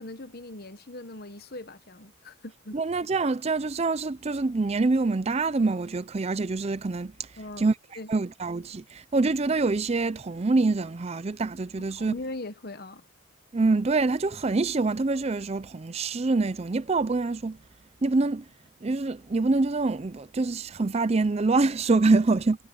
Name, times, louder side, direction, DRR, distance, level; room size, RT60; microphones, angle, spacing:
voice 1, 0.0-2.8 7.4-8.1 11.8-13.0, left 2 dB, 45° left, 1.3 m, -40 dB
voice 2, 2.7-7.3 7.6-7.7 8.1-12.1 13.5-17.6 18.0-18.4 18.8-22.6, right 3 dB, 30° right, 0.4 m, -25 dB
head